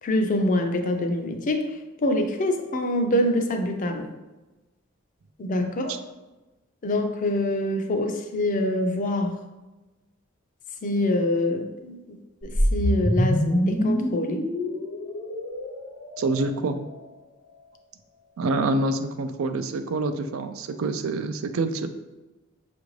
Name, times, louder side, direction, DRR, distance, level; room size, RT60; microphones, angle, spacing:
voice 1, 0.0-4.1 5.4-6.0 6.8-9.4 10.8-12.2 12.4-14.4, left 1 dB, 40° left, 5 dB, 0.5 m, -25 dB
sound 1, 12.4-16.7, equal, 65° left, 1.0 m, -25 dB
voice 2, 16.2-16.8 18.4-21.9, right 2 dB, 80° right, 8 dB, 0.4 m, -26 dB
5.8 x 2.5 x 3.1 m, 1.1 s
head